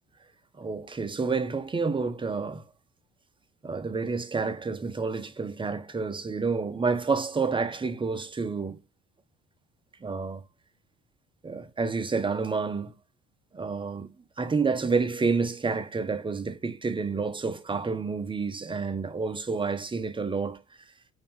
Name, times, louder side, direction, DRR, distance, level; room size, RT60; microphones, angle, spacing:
voice 1, 0.6-2.6 3.6-8.8 10.0-10.4 11.4-12.9 13.5-14.1 14.4-20.6, right 4 dB, 15° right, 0.7 m, -29 dB
3.9 x 2.8 x 3.5 m
figure-of-eight pair, 60°, 36 cm